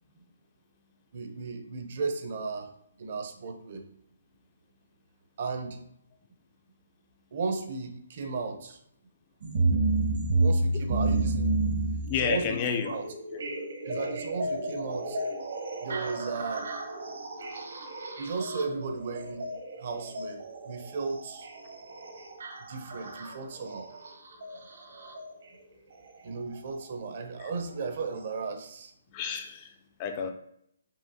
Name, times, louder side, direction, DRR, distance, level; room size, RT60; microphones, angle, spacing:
voice 1, 1.1-2.7 3.0-3.9 5.4-5.8 7.3-8.8 10.4-11.5 12.2-12.6 12.9-13.1 13.8-15.2 15.8-16.7 18.2-19.5 19.8-21.5 22.7-23.9 26.2-28.9, right 4 dB, 45° right, 6 dB, 0.6 m, -35 dB
sound 1, 9.4-25.3 26.5-26.6 27.4-27.5 28.2-28.3, right 2 dB, 70° right, 1.1 m, -31 dB
voice 2, 12.1-12.9 13.3-13.4 13.9-14.0 27.4-27.5 29.1-29.7 30.0-30.3, left 7 dB, 25° left, 5 dB, 0.3 m, -30 dB
5.6 x 2.6 x 2.6 m, 0.72 s
hypercardioid pair, 160°, 0 cm